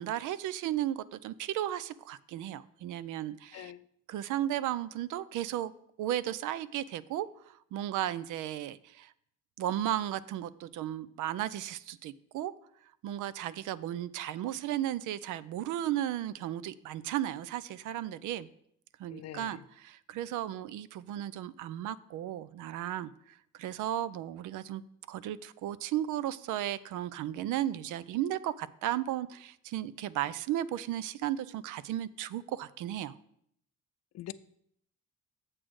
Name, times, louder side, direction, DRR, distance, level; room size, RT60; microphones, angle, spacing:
voice 1, 0.0-3.7 4.1-5.7 6.0-9.1 9.6-12.5 13.0-18.5 19.0-23.1 23.5-24.8 25.1-33.2, right 12 dB, 85° right, 0.5 m, -35 dB
voice 2, 3.5-3.9 19.1-19.6 34.1-34.3, left 13 dB, 60° left, 0.5 m, -44 dB
7.6 x 6.2 x 4.7 m
cardioid pair, 90°, 30 cm